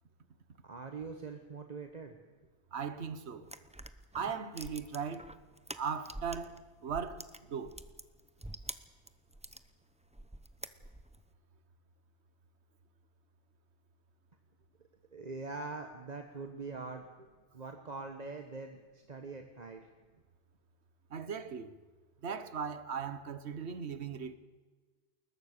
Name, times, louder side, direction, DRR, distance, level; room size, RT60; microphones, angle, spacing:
voice 1, 0.6-2.2 15.1-19.8, right 3 dB, 40° right, 1.3 m, -43 dB
voice 2, 2.7-3.5 4.1-5.3 5.8-7.8 21.1-21.7 22.2-24.4, right 6 dB, 85° right, 1.4 m, -38 dB
sound 1, 3.4-6.6 6.9-9.6 10.1-11.2, right 1 dB, 5° right, 0.7 m, -46 dB
20.5 x 20.5 x 6.6 m
omnidirectional pair, 1.1 m